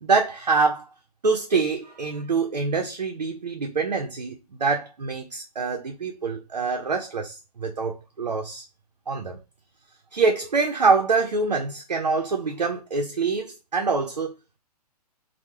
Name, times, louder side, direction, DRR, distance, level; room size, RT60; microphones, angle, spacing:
voice 1, 0.0-0.9 1.2-8.6 9.1-9.4 10.1-14.3, right 4 dB, 90° right, 0.4 m, -25 dB
2.2 x 2.0 x 3.0 m
figure-of-eight pair, 120°, 20 cm